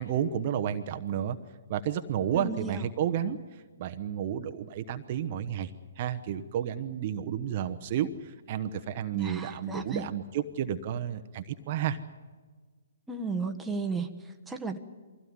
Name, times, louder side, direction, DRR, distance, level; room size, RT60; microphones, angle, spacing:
voice 1, 0.0-1.4 1.7-3.4 3.8-5.7 6.0-12.0, right 9 dB, 45° right, 7 dB, 1.0 m, -31 dB
voice 2, 2.3-2.9 9.1-10.1 13.1-14.8, right 4 dB, 5° right, 2 dB, 1.4 m, -34 dB
23.0 x 16.0 x 9.7 m, 1.5 s
hypercardioid pair, 135°, 0 cm